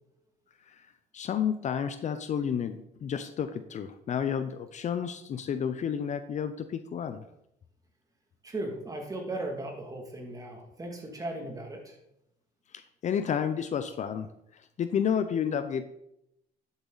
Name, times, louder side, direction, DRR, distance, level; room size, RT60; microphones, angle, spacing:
voice 1, 1.1-7.2 12.7-14.3 14.5-15.9, left 8 dB, 45° left, 11 dB, 0.6 m, -31 dB
voice 2, 8.4-12.0, right 1 dB, 20° right, 2 dB, 2.3 m, -37 dB
10.5 x 8.1 x 4.0 m, 0.80 s
cardioid pair, 110°, 17 cm